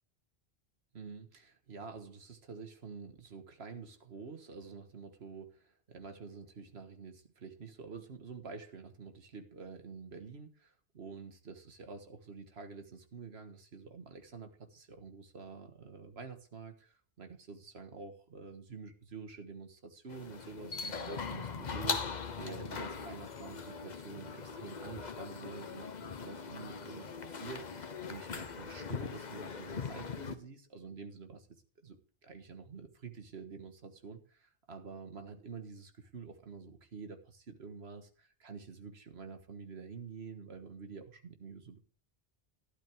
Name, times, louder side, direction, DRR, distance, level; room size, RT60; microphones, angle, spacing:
voice 1, 0.9-22.0 22.4-41.8, right 5 dB, 90° right, 7 dB, 1.7 m, -48 dB
sound 1, 20.1-30.4, left 5 dB, 45° left, 1.0 m, -40 dB
12.0 x 11.5 x 3.5 m, 0.39 s
omnidirectional pair, 1.0 m